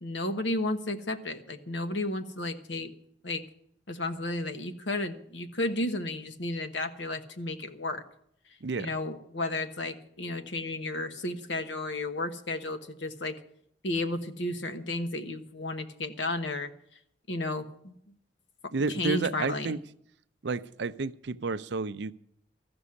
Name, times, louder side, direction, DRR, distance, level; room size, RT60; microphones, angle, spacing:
voice 1, 0.0-2.9 3.2-3.4 3.9-8.0 8.8-13.3 13.8-16.7 17.3-17.9 19.0-19.7, left 2 dB, 80° left, 8 dB, 1.2 m, -33 dB
voice 2, 8.6-8.9 18.7-19.8 20.4-22.1, right 4 dB, 70° right, 14 dB, 0.5 m, -31 dB
14.0 x 6.2 x 9.6 m, 0.71 s
head